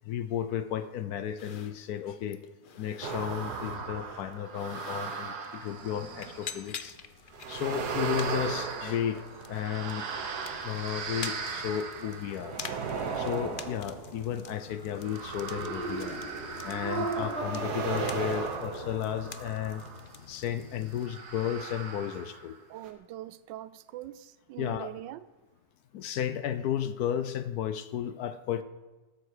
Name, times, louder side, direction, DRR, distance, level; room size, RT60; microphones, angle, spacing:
voice 1, 0.1-2.4 2.8-7.0 7.5-9.2 9.5-10.1 10.6-12.6 13.2-16.2 16.6-19.8 20.3-22.6 24.6-24.9 25.9-28.6, left 10 dB, 70° left, 1.0 m, -33 dB
sound 1, 1.4-21.1, left 6 dB, 90° left, 0.4 m, -47 dB
sound 2, 3.0-6.7 7.3-20.2 21.0-22.6 22.8-22.9, right 5 dB, 65° right, 1.7 m, -37 dB
Laughter, 15.4-19.1, right 2 dB, 40° left, 3.9 m, -37 dB
voice 2, 22.7-25.2, right 14 dB, 85° right, 1.3 m, -42 dB
13.0 x 13.0 x 4.9 m
omnidirectional pair, 1.9 m